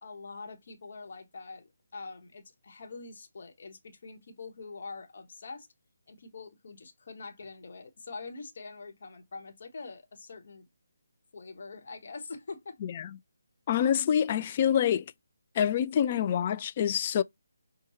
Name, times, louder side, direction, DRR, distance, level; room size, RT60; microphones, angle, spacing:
voice 1, 0.0-5.7 6.1-10.7 11.3-12.8, left 4 dB, 50° left, 1.1 m, -44 dB
voice 2, 12.8-13.2 13.7-15.1 15.6-17.2, left 9 dB, 30° left, 0.3 m, -26 dB
6.0 x 2.2 x 2.9 m
figure-of-eight pair, 150°, 0 cm